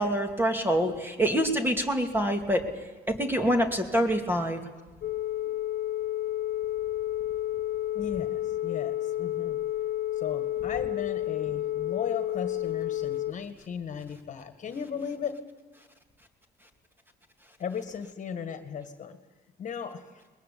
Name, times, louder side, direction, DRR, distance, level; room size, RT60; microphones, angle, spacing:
voice 1, 0.0-2.7 3.1-4.6, equal, 10° right, 5 dB, 2.6 m, -26 dB
Telephone, 5.0-13.3, left 13 dB, 65° left, 0.8 m, -31 dB
voice 2, 7.9-9.6 10.2-15.4 17.6-19.2 19.6-20.2, left 7 dB, 45° left, 8 dB, 1.8 m, -36 dB
22.0 x 21.0 x 8.5 m, 1.3 s
cardioid pair, 110°, 17 cm